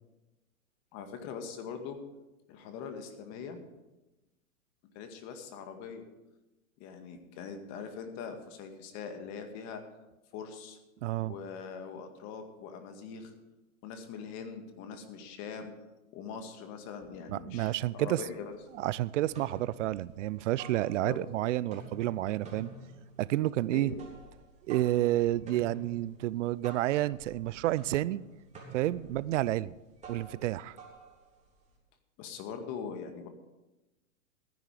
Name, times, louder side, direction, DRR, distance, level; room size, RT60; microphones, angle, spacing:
voice 1, 0.9-2.0 2.5-3.6 4.9-6.0 6.8-9.8 10.3-10.8 11.2-13.3 13.8-15.7 16.1-18.6 20.9-21.2 23.7-24.0 32.2-33.3, left 6 dB, 40° left, 6 dB, 2.0 m, -42 dB
voice 2, 11.0-11.3 17.3-18.2 18.8-22.7 23.2-23.9 24.7-28.2 28.7-29.7 30.1-30.8, right 15 dB, 60° right, 20 dB, 0.5 m, -30 dB
sound 1, 18.3-18.9 19.2-21.4 21.6-31.8, right 2 dB, 15° right, 3.6 m, -50 dB
15.0 x 10.5 x 5.0 m, 1.0 s
hypercardioid pair, 125°, 43 cm